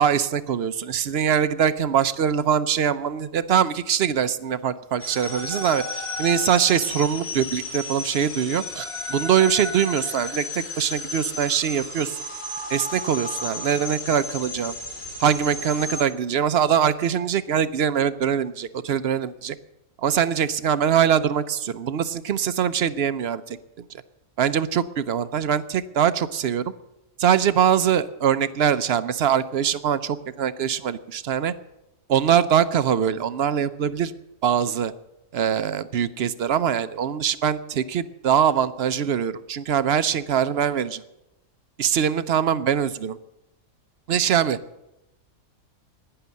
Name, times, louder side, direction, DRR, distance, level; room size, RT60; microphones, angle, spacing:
voice 1, 0.0-12.2 12.7-14.8 15.2-19.6 20.0-24.0 24.4-26.7 27.2-31.5 32.1-34.1 34.4-34.9 35.3-41.0 41.8-43.2 44.1-44.6, right 8 dB, 55° right, 14 dB, 0.8 m, -23 dB
sound 1, 5.0-16.0, left 2 dB, 45° left, 2.6 m, -33 dB
11.5 x 9.9 x 9.4 m, 0.91 s
omnidirectional pair, 1.4 m